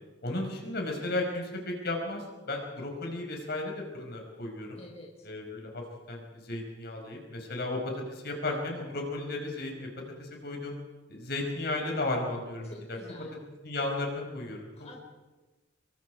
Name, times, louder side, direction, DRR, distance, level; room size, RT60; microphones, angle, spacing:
voice 1, 0.2-4.8 5.2-9.9 10.2-10.8 11.1-13.0 13.6-14.7, left 2 dB, 60° left, 1 dB, 5.2 m, -34 dB
voice 2, 4.8-5.3 12.6-13.3 14.7-15.0, left 2 dB, 35° left, -1 dB, 4.6 m, -48 dB
27.0 x 24.0 x 4.8 m, 1.2 s
head